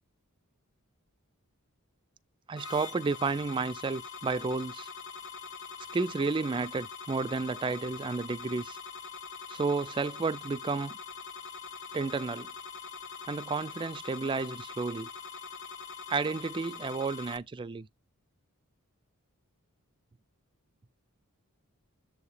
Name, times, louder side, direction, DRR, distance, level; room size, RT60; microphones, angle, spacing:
voice 1, 2.5-4.9 5.9-8.8 9.5-11.0 11.9-12.5 13.3-15.1 16.1-17.9, right 4 dB, 20° right, 0.3 m, -32 dB
sound 1, 2.6-17.4, left 5 dB, 55° left, 0.7 m, -43 dB
7.5 x 2.8 x 4.8 m
head